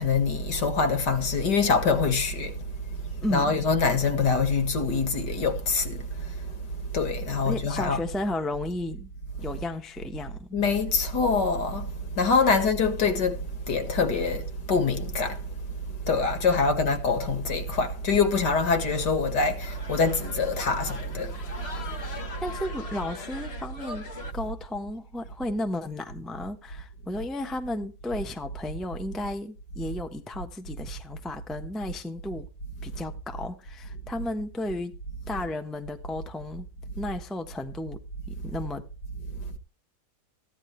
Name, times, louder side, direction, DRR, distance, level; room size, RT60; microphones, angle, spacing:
voice 1, 0.0-2.6 3.0-6.5 6.9-8.2 10.5-15.5 16.1-21.4 21.8-21.9 35.3-35.4, left 4 dB, 60° left, 2.4 m, -25 dB
voice 2, 3.2-3.6 7.4-9.1 9.4-10.6 12.4-12.5 16.5-16.6 22.1-32.5 32.8-35.0 35.3-36.7 37.0-38.0 38.3-38.8, left 1 dB, ahead, 0.8 m, -34 dB
sound 1, 19.1-24.3, left 3 dB, 35° left, 1.5 m, -41 dB
15.0 x 10.5 x 3.3 m
omnidirectional pair, 2.1 m